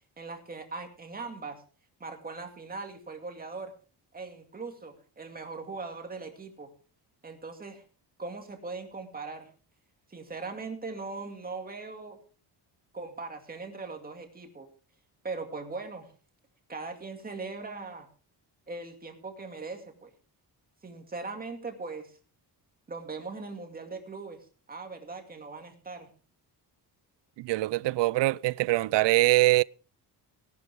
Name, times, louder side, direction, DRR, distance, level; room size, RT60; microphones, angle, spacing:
voice 1, 0.2-1.6 2.0-3.7 4.1-6.7 7.2-7.8 8.2-9.5 10.1-12.2 12.9-14.7 15.2-16.1 16.7-18.1 18.7-20.1 20.8-22.2 22.9-24.4 24.7-26.1, right 3 dB, 20° right, 2.4 m, -40 dB
voice 2, 27.4-29.6, right 19 dB, 85° right, 0.5 m, -23 dB
17.5 x 12.0 x 3.6 m
cardioid pair, 170°, 42 cm